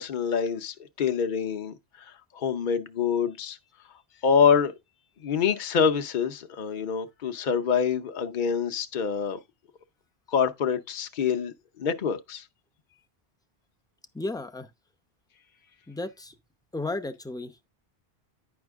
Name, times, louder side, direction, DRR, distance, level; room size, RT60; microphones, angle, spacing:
voice 1, 0.0-1.7 2.3-3.6 4.2-4.7 5.2-9.4 10.3-11.5 11.8-12.4, left 6 dB, 50° left, 0.9 m, -26 dB
voice 2, 14.1-14.7 15.9-16.4 16.7-17.6, left 2 dB, 5° left, 0.6 m, -34 dB
9.6 x 5.7 x 3.5 m
omnidirectional pair, 1.0 m